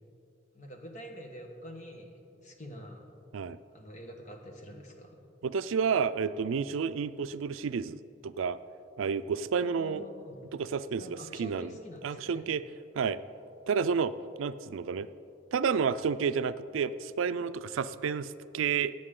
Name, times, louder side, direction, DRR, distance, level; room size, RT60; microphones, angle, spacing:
voice 1, 0.5-3.1 3.7-5.3 9.6-10.4 11.0-12.5, equal, 35° left, 2 dB, 1.2 m, -47 dB
voice 2, 5.4-8.6 9.0-10.0 10.5-11.7 12.0-12.6 13.0-13.2 13.7-15.1 15.5-18.9, right 6 dB, 90° right, 14 dB, 0.4 m, -30 dB
16.5 x 8.5 x 3.7 m, 2.7 s
head